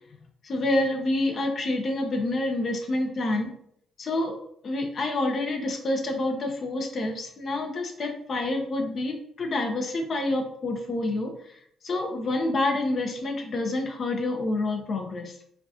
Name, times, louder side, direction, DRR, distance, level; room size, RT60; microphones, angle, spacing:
voice 1, 0.4-3.5 4.0-4.4 4.6-15.4, left 2 dB, 50° left, 3 dB, 0.8 m, -28 dB
4.5 x 2.5 x 2.8 m, 0.68 s
cardioid pair, 90°, 0 cm